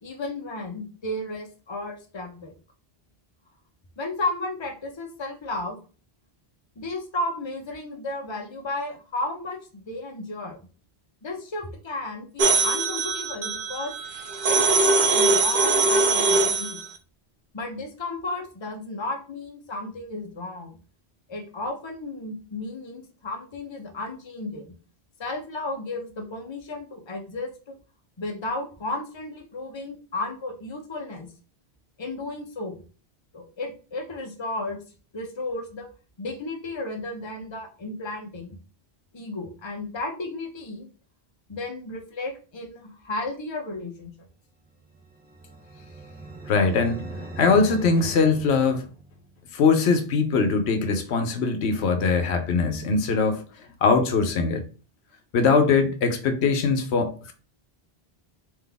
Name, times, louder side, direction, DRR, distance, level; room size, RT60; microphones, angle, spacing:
voice 1, 0.0-2.5 4.0-5.8 6.8-10.6 11.2-13.9 14.5-16.8 17.5-20.7 21.3-24.7 25.2-27.7 28.2-31.3 32.0-32.8 33.3-34.8 35.1-35.9 36.2-38.6 39.1-40.9 41.5-44.1, left 2 dB, 30° left, 0.8 m, -33 dB
sound 1, 12.4-16.9, right 3 dB, 60° right, 0.8 m, -22 dB
sound 2, 44.8-49.4, right 2 dB, 15° right, 0.4 m, -40 dB
voice 2, 46.5-48.9 49.5-53.4 53.8-54.7 55.3-57.3, left 4 dB, 90° left, 1.0 m, -22 dB
3.9 x 3.0 x 3.4 m
omnidirectional pair, 1.1 m